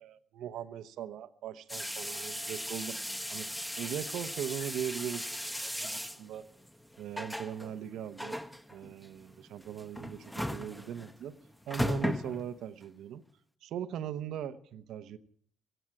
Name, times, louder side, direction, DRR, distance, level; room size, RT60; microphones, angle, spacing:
voice 1, 0.0-3.0 3.3-3.5 3.8-6.5 7.0-8.4 8.7-11.3 11.7-13.2 13.6-15.2, right 9 dB, 65° right, 12 dB, 0.9 m, -40 dB
sound 1, 1.7-12.9, left 1 dB, 5° left, 1.2 m, -38 dB
17.0 x 16.0 x 4.7 m, 0.63 s
figure-of-eight pair, 45°, 0 cm